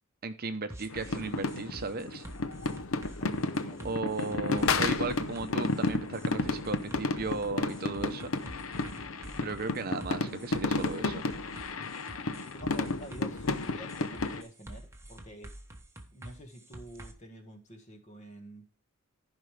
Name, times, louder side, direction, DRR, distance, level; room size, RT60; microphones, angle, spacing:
voice 1, 0.2-2.2 3.8-8.3 9.4-11.2, right 3 dB, 45° right, 9 dB, 0.7 m, -36 dB
sound 1, 0.7-17.1, right 1 dB, 15° right, 1.1 m, -48 dB
sound 2, 0.9-14.4, left 3 dB, 75° left, 0.7 m, -32 dB
voice 2, 3.2-3.9 12.5-15.5 16.1-18.6, right 1 dB, 35° left, 5 dB, 1.5 m, -48 dB
14.5 x 5.3 x 3.2 m, 0.34 s
head